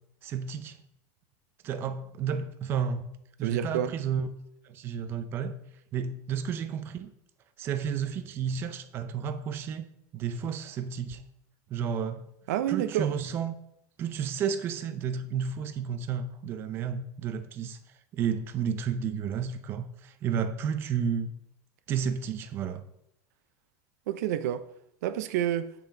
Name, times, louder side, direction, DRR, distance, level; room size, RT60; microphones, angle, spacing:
voice 1, 0.2-0.8 1.6-3.1 3.4-4.3 4.6-5.5 5.9-7.1 7.6-9.8 10.1-11.2 11.7-12.3 12.7-13.6 14.0-17.8 18.1-21.3 21.9-22.8, right 7 dB, 25° right, 0.5 m, -31 dB
voice 2, 3.4-3.9 12.5-13.1 24.1-24.6 25.0-25.7, right 11 dB, 90° right, 0.6 m, -28 dB
8.5 x 5.9 x 3.8 m
supercardioid pair, 180°, 9 cm